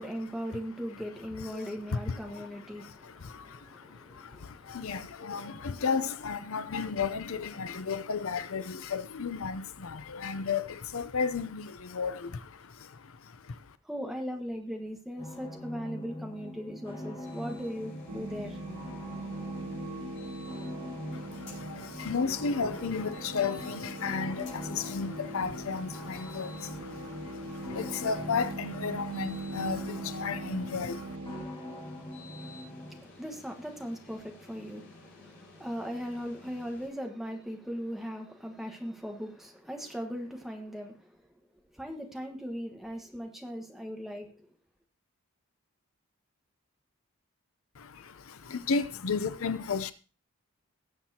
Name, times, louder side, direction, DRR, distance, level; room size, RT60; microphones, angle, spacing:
voice 1, 0.0-5.8 13.8-18.6 32.3-41.2 41.7-44.5, equal, ahead, 1.4 m, -39 dB
voice 2, 1.5-2.5 2.8-13.8 21.1-31.2 47.8-49.9, left 5 dB, 70° left, 0.6 m, -34 dB
sound 1, 15.2-33.0, left 1 dB, 25° left, 2.4 m, -43 dB
sound 2, 17.2-36.9, left 2 dB, 50° left, 5.2 m, -53 dB
sound 3, 18.1-31.5, right 2 dB, 80° right, 1.1 m, -42 dB
19.0 x 7.5 x 2.9 m
head